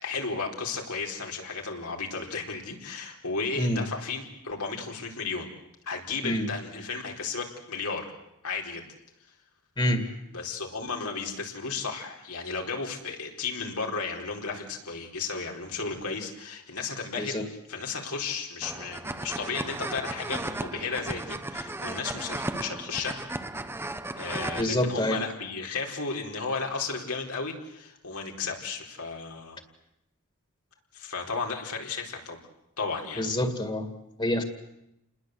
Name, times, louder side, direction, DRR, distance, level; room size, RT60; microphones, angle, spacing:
voice 1, 0.0-5.5 5.9-8.1 8.4-8.8 10.3-23.3 24.2-29.6 30.9-32.4 32.8-33.2, left 4 dB, 85° left, 1 dB, 4.5 m, -34 dB
sound 1, 18.6-24.6, right 2 dB, 10° right, 0.9 m, -35 dB
voice 2, 24.6-25.2 33.2-33.8 34.2-34.4, left 1 dB, 20° left, 7 dB, 2.2 m, -26 dB
29.5 x 20.5 x 8.0 m, 0.84 s
head